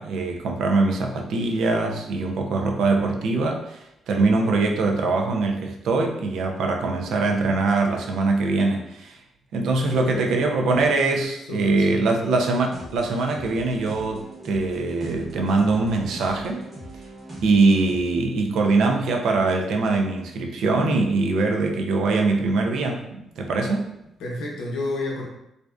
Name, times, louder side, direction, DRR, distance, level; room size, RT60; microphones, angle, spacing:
voice 1, 0.0-9.2 9.5-16.6 17.4-23.9, right 3 dB, 75° right, 2 dB, 0.4 m, -22 dB
voice 2, 9.8-10.3 11.5-12.1 24.2-25.2, left 2 dB, 85° left, -2 dB, 0.6 m, -31 dB
sound 1, 12.7-18.0, right 1 dB, 35° right, 0.9 m, -40 dB
2.5 x 2.2 x 2.3 m, 0.83 s
cardioid pair, 90°, 0 cm